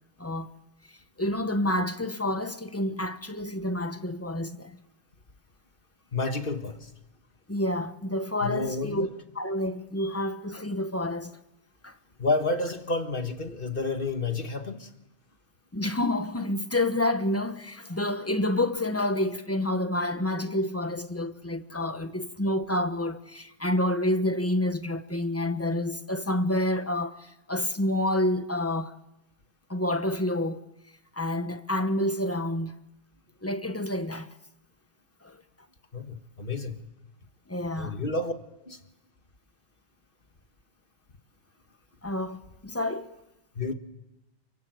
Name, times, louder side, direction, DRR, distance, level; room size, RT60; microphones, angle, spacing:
voice 1, 0.2-0.5 1.2-4.8 7.5-9.1 9.3-11.3 11.8-11.9 15.7-28.9 29.7-30.6 31.2-32.7 33.4-34.3 35.2-35.4 37.5-38.0 42.0-43.1, left 1 dB, 15° left, 1.2 m, -28 dB
voice 2, 6.1-6.9 8.4-9.1 10.0-10.1 12.2-14.9 35.9-36.8 37.8-38.3 38.7-38.8 43.6-43.7, left 3 dB, 50° left, 2.0 m, -30 dB
29.0 x 24.0 x 7.9 m
omnidirectional pair, 1.1 m